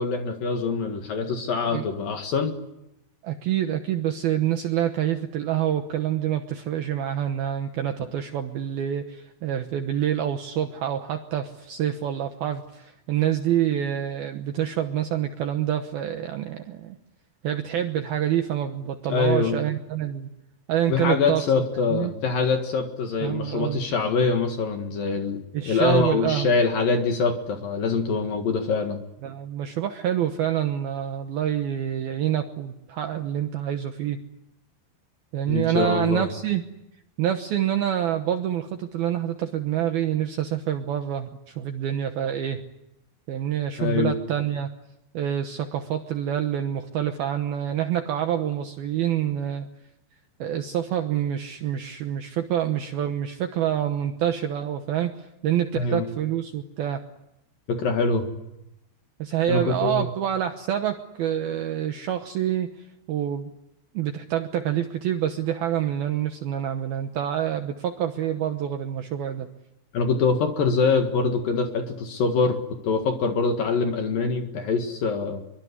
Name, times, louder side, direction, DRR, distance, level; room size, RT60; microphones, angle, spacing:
voice 1, 0.0-2.5 19.1-19.6 20.9-29.0 35.5-36.3 43.8-44.1 55.7-56.1 57.7-58.3 59.5-60.1 69.9-72.6 72.8-75.4, left 4 dB, 60° left, 5 dB, 2.7 m, -24 dB
voice 2, 3.2-17.0 17.4-20.3 20.7-21.4 21.9-22.1 23.2-23.8 25.5-26.5 29.2-34.2 35.3-36.6 37.2-42.6 43.3-44.7 45.1-49.7 50.4-57.0 59.2-62.7 63.1-63.5 63.9-69.5, right 10 dB, 80° right, 6 dB, 2.1 m, -27 dB
24.5 x 23.5 x 9.7 m, 0.88 s
omnidirectional pair, 6.0 m